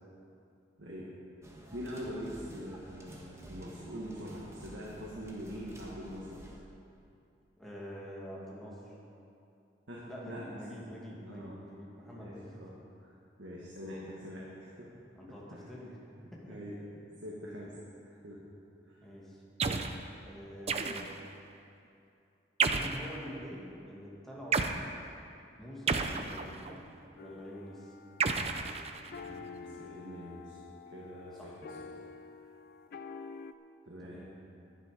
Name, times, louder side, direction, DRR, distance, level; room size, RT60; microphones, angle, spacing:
voice 1, 0.8-1.1 1.7-6.3 9.9-10.4 11.2-11.6 12.1-12.7 13.0-14.9 15.5-15.6 16.5-16.7 17.2-17.8 18.0-18.4 18.8-19.1 26.0-26.2 29.2-30.6 30.9-31.7 33.8-34.2, equal, 75° right, -5 dB, 1.7 m, -44 dB
sound 1, 1.4-6.6, equal, 15° right, 1.4 m, -50 dB
voice 2, 7.6-9.0 10.1-12.6 15.2-16.0 16.3-16.6 19.0-19.4 20.2-21.2 22.6-25.1 25.6-28.0 31.4-31.6 34.0-34.3, equal, ahead, -6 dB, 2.2 m, -46 dB
sound 2, 19.6-20.0 20.7-21.3 22.6-23.1 24.5-24.8 25.9-26.7 28.2-29.3, right 4 dB, 35° right, 0.5 m, -31 dB
sound 3, 27.2-33.5, left 5 dB, 55° left, 0.4 m, -48 dB
11.0 x 11.0 x 5.1 m, 2.6 s
head